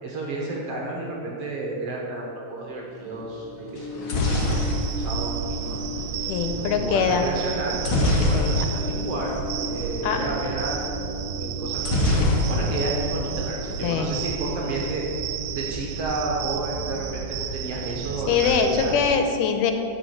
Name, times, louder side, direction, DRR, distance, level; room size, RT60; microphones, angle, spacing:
voice 1, 0.0-4.7 5.0-5.8 6.5-7.8 8.2-9.4 9.7-10.8 11.4-11.9 12.5-15.0 15.5-19.0, right 2 dB, 60° right, -2 dB, 1.8 m, -31 dB
sound 1, 2.6-18.5, left 2 dB, 15° right, 2.0 m, -38 dB
sound 2, 3.8-5.9 7.8-9.0 9.3-9.4 9.7-9.9 11.8-13.0 13.3-13.9, left 2 dB, 65° left, 1.1 m, -24 dB
sound 3, 4.2-19.2, right 8 dB, 85° right, 2.1 m, -32 dB
voice 2, 6.3-7.2 8.3-8.7 10.0-10.2 13.8-14.2 18.3-19.7, left 6 dB, 85° left, 6 dB, 2.3 m, -23 dB
9.6 x 5.0 x 7.7 m, 2.6 s
omnidirectional pair, 3.7 m